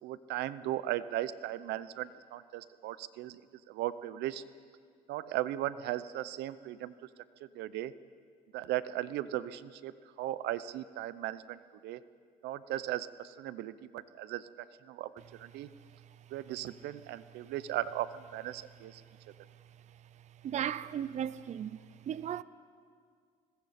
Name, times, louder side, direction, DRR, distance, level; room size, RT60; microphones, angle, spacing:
voice 1, 0.0-3.4 3.7-4.4 5.1-6.9 7.5-7.9 8.5-12.0 12.4-14.5 14.9-15.7 16.3-19.0, right 13 dB, 80° right, 0.7 m, -37 dB
voice 2, 20.4-21.8 22.1-22.4, right 9 dB, 45° right, 0.6 m, -35 dB
30.0 x 21.0 x 4.3 m
cardioid pair, 110°, 17 cm